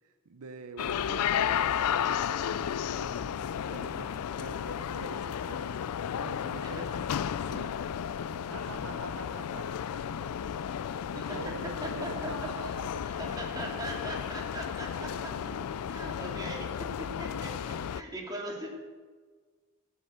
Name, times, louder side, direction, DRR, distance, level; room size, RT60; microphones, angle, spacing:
voice 1, 0.0-5.8 6.2-6.9 7.4-7.7 8.4-9.7 10.1-10.3 11.1-13.0 15.0-15.8, right 4 dB, 70° right, 8 dB, 0.6 m, -45 dB
sound 1, 0.8-18.0, left 8 dB, 80° left, 0.4 m, -33 dB
voice 2, 11.8-12.3 12.6-12.8 13.1-15.1 15.9-16.8 17.2-18.7, right 1 dB, 15° right, -1 dB, 2.4 m, -40 dB
14.5 x 5.4 x 7.7 m, 1.5 s
head